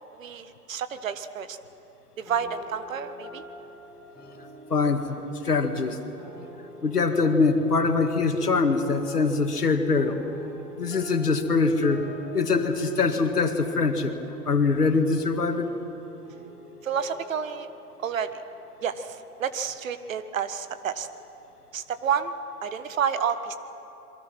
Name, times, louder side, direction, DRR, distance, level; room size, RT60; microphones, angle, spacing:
voice 1, 0.2-1.6 2.2-3.4 16.8-17.7 18.0-18.4 18.8-21.1 21.7-22.3 22.6-23.6, right 7 dB, 55° right, 11 dB, 1.5 m, -30 dB
sound 1, 2.2-19.0, equal, ahead, 6.5 m, -45 dB
voice 2, 4.7-6.0 6.8-10.2 10.8-12.0 12.3-14.1 14.5-15.7, left 4 dB, 75° left, 7 dB, 2.1 m, -23 dB
27.5 x 23.0 x 6.1 m, 2.9 s
figure-of-eight pair, 110°, 47 cm